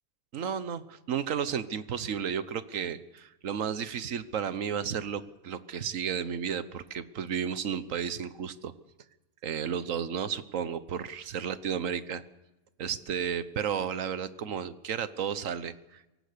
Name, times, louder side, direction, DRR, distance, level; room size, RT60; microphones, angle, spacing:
voice 1, 0.3-8.7 9.4-12.2 12.8-16.0, right 7 dB, 65° right, 14 dB, 1.4 m, -33 dB
23.5 x 18.0 x 6.8 m, 1.0 s
omnidirectional pair, 1.5 m